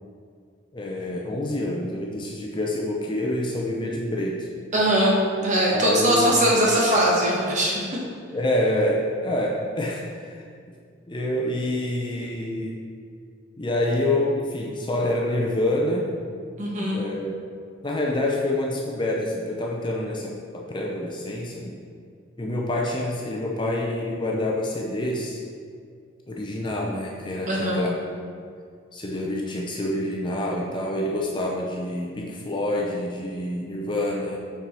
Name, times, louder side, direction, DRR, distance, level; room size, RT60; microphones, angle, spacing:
voice 1, 0.7-4.5 5.7-6.5 8.3-10.4 11.1-12.8 13.6-16.1 16.9-17.4 17.8-21.8 22.4-25.4 26.3-28.0 28.9-34.4, left 1 dB, 25° left, -1 dB, 0.6 m, -27 dB
voice 2, 4.7-7.8 16.6-17.0 27.5-27.8, right 1 dB, 35° right, -4 dB, 1.3 m, -21 dB
6.4 x 4.7 x 4.3 m, 2.2 s
head